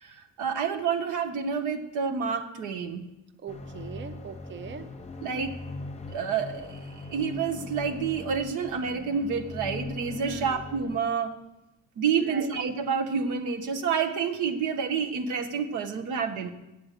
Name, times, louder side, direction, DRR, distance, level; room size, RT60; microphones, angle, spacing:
voice 1, 0.0-3.0 5.2-5.6 6.1-11.3 12.0-16.5, right 6 dB, 90° right, 6 dB, 1.0 m, -29 dB
voice 2, 3.4-4.9 10.2-10.6 12.2-12.5, right 6 dB, 40° right, 11 dB, 0.6 m, -40 dB
sound 1, 3.5-11.0, left 2 dB, 20° left, 0.9 m, -40 dB
8.6 x 7.6 x 6.5 m, 0.94 s
cardioid pair, 90°, 30 cm